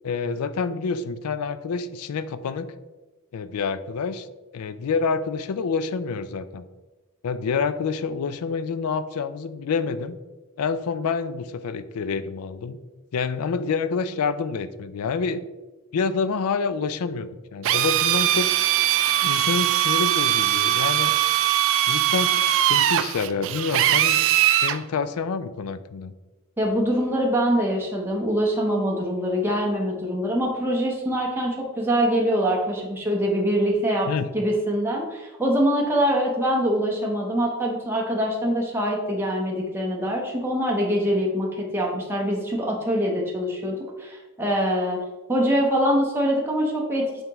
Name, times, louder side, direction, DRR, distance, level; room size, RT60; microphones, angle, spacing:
voice 1, 0.0-2.7 3.3-4.3 4.5-6.6 7.2-10.2 10.6-12.8 13.1-15.4 15.9-18.5 19.2-21.1 21.9-24.2 24.5-26.1 34.1-34.3, left 5 dB, 85° left, 13 dB, 0.4 m, -27 dB
Drill, 17.6-24.8, right 12 dB, 60° right, 0.3 m, -21 dB
voice 2, 26.6-34.1 34.3-45.0 45.3-47.0, equal, 10° right, -2 dB, 0.9 m, -24 dB
8.8 x 3.6 x 3.0 m, 1.2 s
head